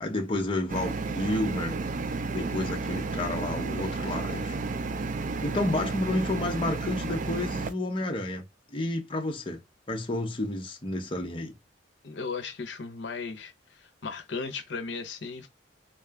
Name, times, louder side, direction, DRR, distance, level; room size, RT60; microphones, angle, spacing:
voice 1, 0.0-1.8 2.3-4.6 5.4-8.4 8.7-9.6 9.9-11.6, left 1 dB, 30° left, 0.7 m, -30 dB
sound 1, 0.7-7.7, right 3 dB, 45° right, 0.3 m, -32 dB
voice 2, 12.0-15.5, left 4 dB, 75° left, 0.7 m, -36 dB
3.7 x 2.3 x 3.4 m
head